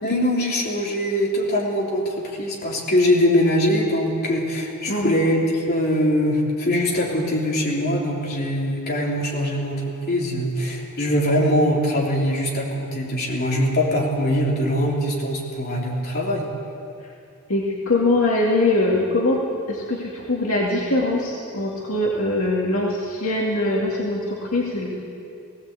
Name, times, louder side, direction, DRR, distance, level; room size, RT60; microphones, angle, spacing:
voice 1, 0.0-5.4 5.7-16.4, equal, 45° left, -3 dB, 3.6 m, -22 dB
voice 2, 4.9-5.2 17.5-19.4 19.7-24.9, left 2 dB, 65° left, -3 dB, 2.3 m, -22 dB
18.5 x 17.0 x 8.3 m, 2.6 s
head